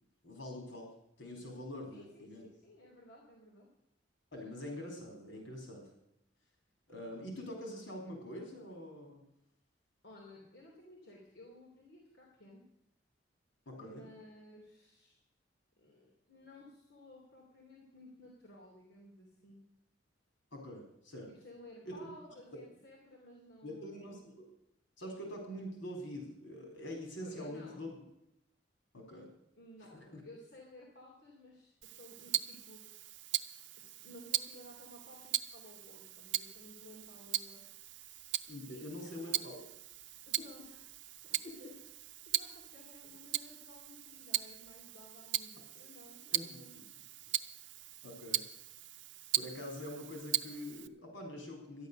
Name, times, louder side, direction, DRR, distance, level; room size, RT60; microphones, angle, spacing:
voice 1, 0.2-0.9 1.2-2.5 4.3-5.9 6.9-9.2 13.7-14.1 20.5-21.3 21.9-22.1 22.5-22.6 23.6-24.2 25.0-27.9 28.9-29.3 29.9-30.2 38.5-39.7 41.4-41.7 46.3-46.9 48.0-48.4 49.4-51.9, left 1 dB, 85° left, 2 dB, 4.1 m, -45 dB
voice 2, 1.9-3.7 10.0-12.6 13.7-15.2 15.8-19.6 21.3-24.1 27.2-27.9 29.6-32.8 33.8-37.6 38.7-39.4 40.3-40.9 41.2-41.8 42.2-46.8, left 1 dB, 65° left, -3 dB, 3.0 m, -56 dB
Tick-tock, 31.8-50.9, right 13 dB, 80° right, 0.6 m, -39 dB
13.5 x 10.0 x 6.7 m, 0.81 s
head